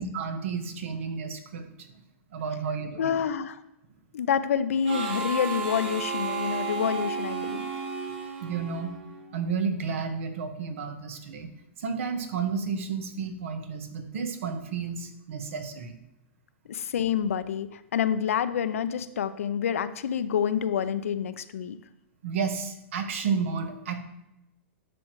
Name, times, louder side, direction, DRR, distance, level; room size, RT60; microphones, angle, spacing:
voice 1, 0.0-1.9 2.3-3.2 8.4-8.9 9.3-11.5 11.8-16.0 22.2-24.0, right 5 dB, 70° right, 8 dB, 1.2 m, -32 dB
voice 2, 3.0-3.6 4.1-7.7 16.7-21.8, left 8 dB, 85° left, 12 dB, 0.6 m, -28 dB
Harmonica, 4.8-9.3, right 5 dB, 50° right, 2.0 m, -33 dB
11.0 x 6.1 x 3.1 m, 0.87 s
hypercardioid pair, 135°, 7 cm